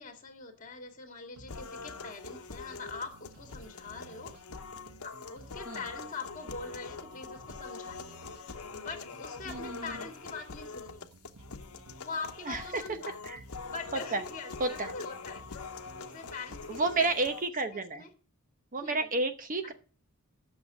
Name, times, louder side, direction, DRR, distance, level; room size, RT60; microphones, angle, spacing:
voice 1, 0.0-4.3 5.0-8.2 8.7-11.1 12.0-13.2 13.6-17.2 17.7-18.1 18.8-19.1 19.6-19.7, left 4 dB, 35° left, 5 dB, 2.0 m, -43 dB
sound 1, 1.4-17.4, right 2 dB, 90° right, 1.2 m, -56 dB
sound 2, 1.5-17.5, left 4 dB, 75° left, 0.9 m, -44 dB
voice 2, 9.5-10.0 12.5-12.8 13.2-13.4 14.1-14.2 14.6-14.9 16.7-18.0 18.7-19.7, right 3 dB, 35° right, 8 dB, 0.9 m, -31 dB
8.5 x 6.5 x 7.2 m, 0.37 s
head